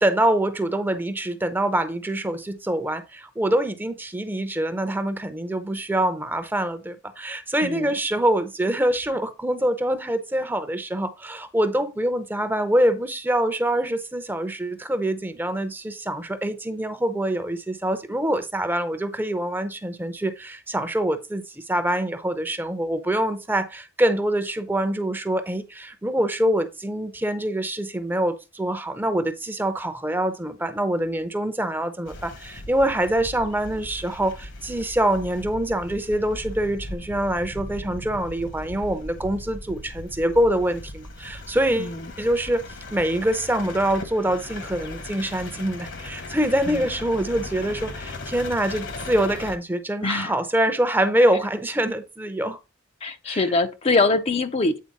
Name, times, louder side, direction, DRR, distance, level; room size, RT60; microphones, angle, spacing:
voice 1, 0.0-42.6 42.9-52.6 53.3-53.5, right 1 dB, 10° right, 0.6 m, -25 dB
voice 2, 7.6-7.9 41.8-42.0 46.7-46.8 50.0-50.3 53.0-54.8, left 3 dB, 30° left, 0.5 m, -23 dB
sound 1, 32.1-49.6, left 2 dB, 60° left, 1.2 m, -38 dB
8.5 x 4.1 x 4.0 m
head